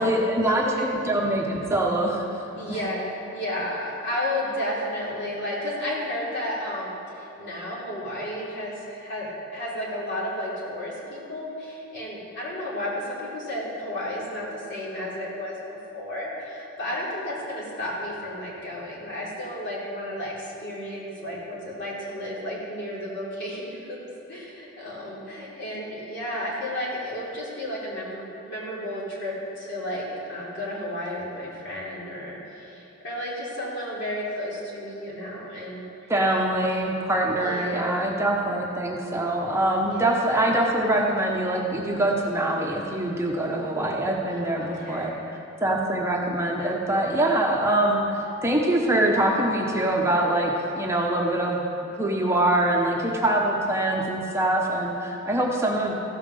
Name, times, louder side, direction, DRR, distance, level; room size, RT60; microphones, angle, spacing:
voice 1, 0.0-2.2 2.7-2.8 36.1-51.6 51.9-55.9, right 1 dB, 15° right, -1 dB, 0.9 m, -24 dB
voice 2, 2.5-24.0 24.3-36.1 37.2-38.2 39.8-40.2 43.4-44.1 44.6-45.2 47.2-47.4, left 1 dB, 60° left, -6 dB, 3.3 m, -33 dB
15.0 x 5.8 x 6.6 m, 2.7 s
head